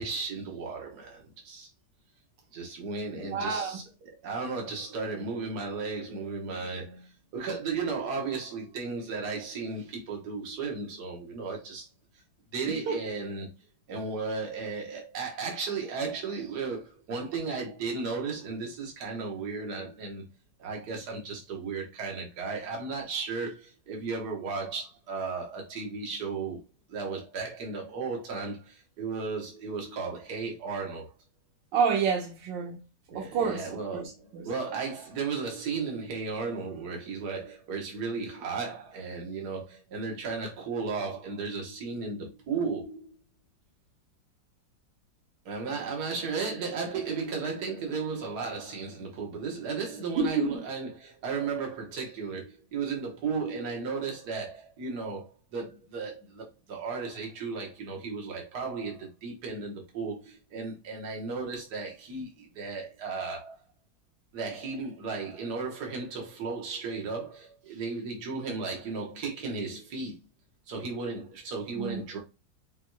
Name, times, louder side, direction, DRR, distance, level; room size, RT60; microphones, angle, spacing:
voice 1, 0.0-1.7 2.5-3.8 4.2-11.9 12.5-13.5 13.9-20.2 20.6-26.6 26.9-31.1 33.1-43.2 45.4-63.6 64.3-70.2 70.7-72.2, right 4 dB, 60° right, 1.6 m, -35 dB
voice 2, 3.2-3.8 12.9-13.0 31.7-32.8 33.1-34.5 50.2-50.6 71.8-72.0, right 6 dB, 90° right, 1.6 m, -29 dB
5.8 x 2.9 x 2.2 m
omnidirectional pair, 2.0 m